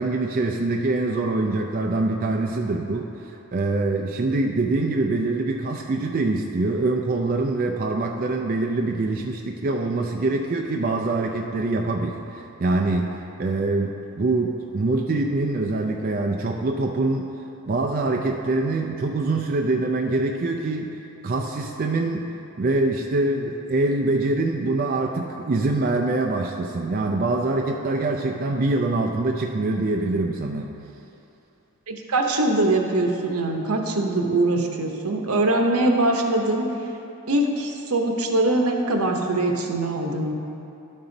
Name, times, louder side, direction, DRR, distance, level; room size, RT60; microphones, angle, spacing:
voice 1, 0.0-17.3 17.7-22.3 22.6-30.7, right 2 dB, 40° right, 1 dB, 0.4 m, -24 dB
voice 2, 31.9-36.7 37.3-40.3, right 2 dB, 80° right, 2 dB, 0.9 m, -22 dB
12.0 x 5.5 x 3.9 m, 2.8 s
head